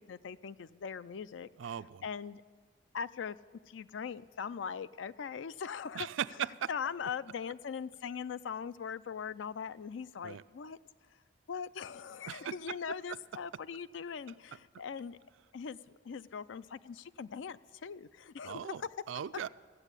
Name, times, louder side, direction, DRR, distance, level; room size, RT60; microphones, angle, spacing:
voice 1, 0.0-2.4 2.9-3.4 3.7-6.1 6.7-10.8 11.5-15.2 15.5-19.0, left 6 dB, 75° left, 16 dB, 0.4 m, -41 dB
voice 2, 1.6-2.0 5.9-6.7 10.2-10.4 12.3-12.5 18.4-18.8 19.1-19.5, right 9 dB, 80° right, 15 dB, 0.4 m, -37 dB
15.0 x 8.0 x 8.3 m, 1.5 s
head